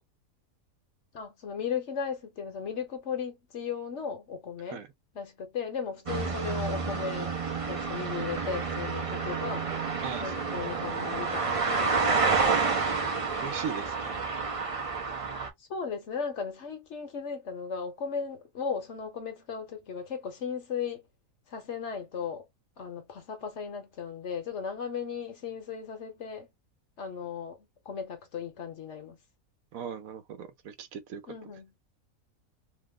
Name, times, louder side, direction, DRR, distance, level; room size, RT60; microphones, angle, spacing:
voice 1, 1.1-4.8 5.1-7.3 7.6-9.7 10.2-12.6 15.6-21.0 21.5-22.5 22.8-26.5 27.0-29.2 31.3-31.7, left 6 dB, 60° left, 1.0 m, -36 dB
sound 1, 6.1-15.5, right 4 dB, 35° right, 0.5 m, -29 dB
voice 2, 10.0-10.3 13.4-14.2 29.7-31.2, right 7 dB, 80° right, 1.1 m, -38 dB
2.9 x 2.0 x 3.5 m
omnidirectional pair, 1.5 m